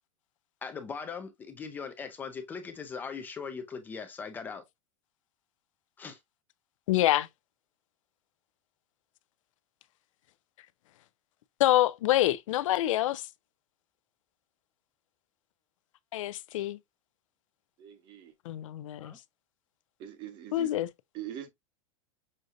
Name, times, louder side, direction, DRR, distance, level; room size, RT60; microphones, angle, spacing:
voice 1, 0.6-4.6 6.0-6.2 19.0-19.2, left 5 dB, 10° left, 0.4 m, -40 dB
voice 2, 6.9-7.3 11.6-13.2 16.1-16.8 18.5-19.1 20.5-20.9, left 14 dB, 80° left, 0.4 m, -26 dB
voice 3, 17.8-18.3 20.0-20.7 21.1-21.5, right 10 dB, 30° right, 0.8 m, -42 dB
6.4 x 2.6 x 2.5 m
supercardioid pair, 170°, 16 cm